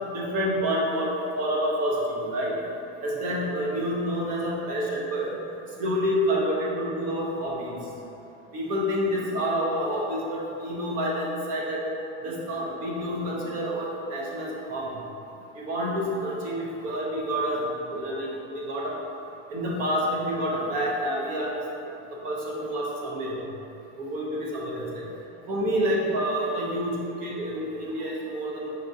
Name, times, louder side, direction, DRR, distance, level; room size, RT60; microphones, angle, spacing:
voice 1, 0.1-2.6 3.0-5.3 5.8-7.8 8.5-11.8 12.2-15.0 15.5-18.9 19.5-21.5 22.2-23.4 24.0-25.0 25.5-28.8, equal, 25° right, -3 dB, 0.6 m, -28 dB
5.3 x 3.4 x 2.7 m, 2.9 s
supercardioid pair, 155°, 35 cm